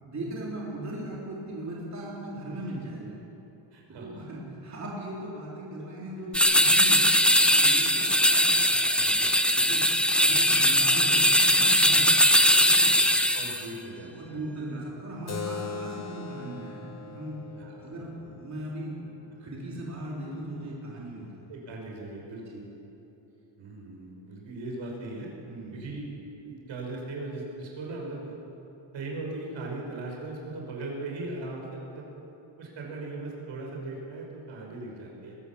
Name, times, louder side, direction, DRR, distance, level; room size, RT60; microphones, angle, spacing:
voice 1, 0.0-3.2 3.9-9.2 9.6-13.0 14.0-17.4 17.8-21.4 22.5-22.6 25.5-25.8, right 1 dB, 35° right, -5 dB, 4.1 m, -38 dB
voice 2, 3.7-4.2 10.3-10.5 13.3-14.5 17.6-17.9 21.5-22.7 23.6-25.3 25.7-26.1 26.4-28.3 28.9-32.1 32.6-35.4, right 2 dB, 75° right, -1 dB, 5.5 m, -38 dB
sound 1, 6.3-13.7, equal, ahead, 0.9 m, -21 dB
Keyboard (musical), 15.3-20.4, left 5 dB, 35° left, 1.5 m, -41 dB
22.0 x 17.5 x 7.3 m, 3.0 s
wide cardioid pair, 175°, 46 cm